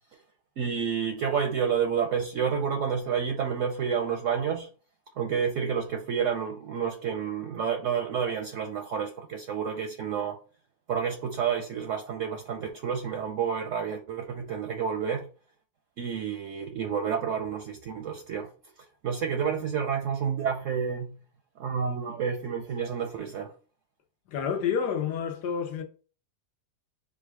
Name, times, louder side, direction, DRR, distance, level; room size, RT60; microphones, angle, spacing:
voice 1, 0.6-4.7 5.2-10.4 10.9-15.3 16.0-18.5 19.0-21.2 21.6-23.5, right 7 dB, 65° right, 0.8 m, -29 dB
voice 2, 24.3-25.8, left 7 dB, 85° left, 1.4 m, -29 dB
4.9 x 2.3 x 4.6 m
omnidirectional pair, 1.7 m